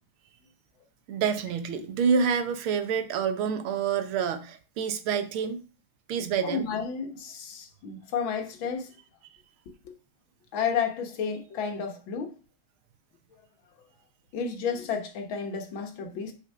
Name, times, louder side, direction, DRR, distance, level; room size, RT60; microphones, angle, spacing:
voice 1, 1.1-5.6 6.1-6.7, right 6 dB, 75° right, 1.7 m, -27 dB
voice 2, 6.4-8.9 9.8-9.9 10.5-12.3 14.3-16.3, left 6 dB, 65° left, 1.9 m, -31 dB
6.3 x 5.1 x 5.4 m
omnidirectional pair, 2.4 m